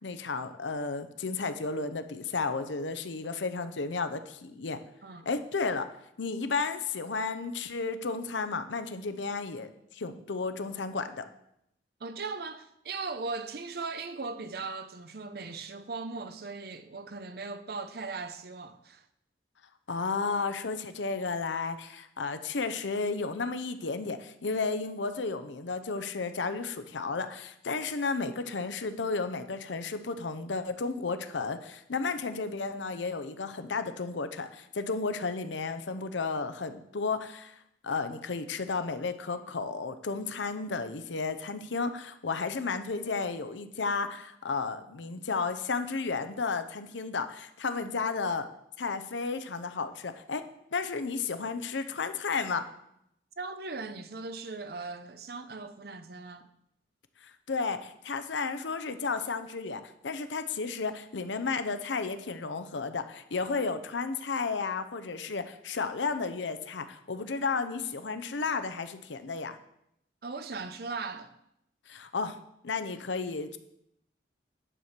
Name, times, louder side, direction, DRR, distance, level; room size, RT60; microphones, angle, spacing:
voice 1, 0.0-4.8 5.3-5.9 6.2-11.3 19.9-48.5 48.8-50.4 50.7-52.6 57.2-69.6 71.9-72.4 72.6-73.6, left 4 dB, 85° left, 0.7 m, -33 dB
voice 2, 12.0-19.1 53.4-56.5 70.2-71.3, right 4 dB, 55° right, 0.7 m, -38 dB
10.0 x 4.5 x 6.6 m
head